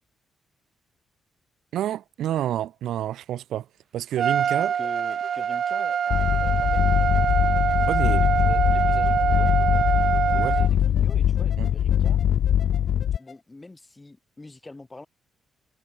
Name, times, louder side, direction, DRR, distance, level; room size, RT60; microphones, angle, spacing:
voice 1, 1.7-3.7 3.9-4.7 7.9-8.3 10.3-10.6 11.6-11.7, right 12 dB, 75° right, 2.0 m, -28 dB
Trumpet, 4.2-10.7, right 8 dB, 45° right, 0.4 m, -24 dB
sound 1, 4.7-13.4, left 5 dB, 30° left, 5.8 m, -49 dB
voice 2, 4.7-7.1 7.7-9.6 10.3-12.2 13.1-15.1, left 2 dB, 15° left, 1.5 m, -45 dB
sound 2, 6.1-13.2, left 10 dB, 60° left, 0.4 m, -22 dB
cardioid pair, 170°, 0 cm